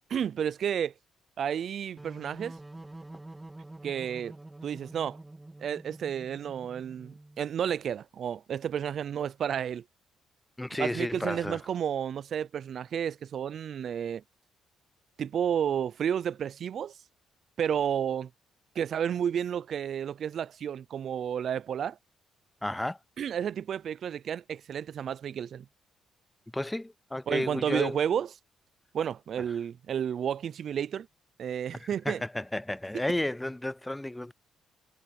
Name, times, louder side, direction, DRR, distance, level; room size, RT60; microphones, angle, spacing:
voice 1, 0.1-0.9 1.4-2.5 3.8-4.3 4.6-5.2 5.6-9.8 10.8-14.2 15.2-16.9 17.6-18.3 18.8-22.0 23.2-25.6 27.3-28.3 28.9-31.1 31.4-32.2, right 8 dB, 60° right, 0.5 m, -31 dB
sound 1, 2.0-7.5, right 2 dB, 15° right, 2.8 m, -47 dB
voice 2, 10.6-11.6 22.6-23.0 26.5-28.0 31.8-34.3, left 1 dB, 10° left, 0.3 m, -32 dB
cardioid pair, 90°, 0 cm